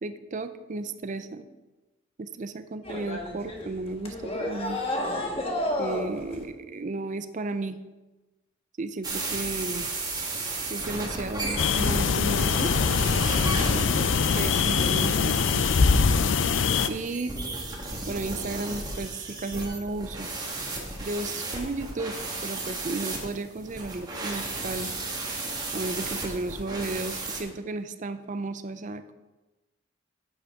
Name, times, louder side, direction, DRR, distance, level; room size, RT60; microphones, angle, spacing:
voice 1, 0.0-1.5 2.2-4.8 5.8-7.8 8.8-9.9 10.7-12.7 13.4-15.7 16.9-17.4 18.1-20.3 21.0-22.2 22.4-24.9 25.7-29.1, right 2 dB, 40° right, 11 dB, 0.5 m, -34 dB
sound 1, 2.8-6.4, left 1 dB, 30° left, 1.3 m, -31 dB
sound 2, 9.0-27.4, right 2 dB, 20° right, 1.5 m, -34 dB
sound 3, 11.6-16.9, left 5 dB, 70° left, 0.5 m, -23 dB
10.5 x 8.5 x 3.6 m, 1.1 s
head